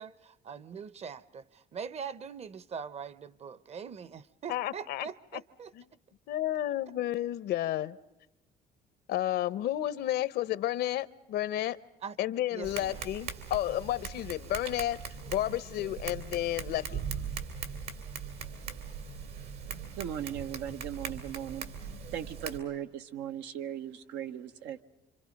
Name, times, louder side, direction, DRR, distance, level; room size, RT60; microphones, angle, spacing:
voice 1, 0.0-5.7 12.0-12.2 12.5-13.0, right 6 dB, 40° right, 0.9 m, -42 dB
voice 2, 4.5-5.4 5.7-5.8 6.3-8.0 9.1-11.8 12.2-17.0, left 13 dB, 75° left, 0.9 m, -32 dB
Tap, 12.6-22.6, right 6 dB, 75° right, 3.0 m, -40 dB
voice 3, 20.0-21.7 22.1-24.8, right 10 dB, 90° right, 1.2 m, -38 dB
28.0 x 26.0 x 5.3 m
cardioid pair, 110°, 17 cm